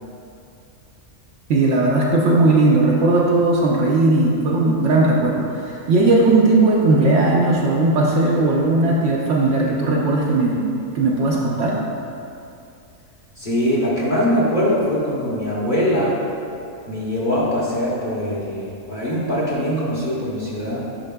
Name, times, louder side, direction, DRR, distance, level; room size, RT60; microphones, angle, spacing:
voice 1, 1.5-10.7 10.9-11.8, right 2 dB, 65° right, -3 dB, 0.8 m, -17 dB
voice 2, 13.4-16.2 16.9-20.9, equal, 40° left, -7 dB, 1.0 m, -22 dB
8.9 x 4.7 x 2.2 m, 2.6 s
omnidirectional pair, 1.5 m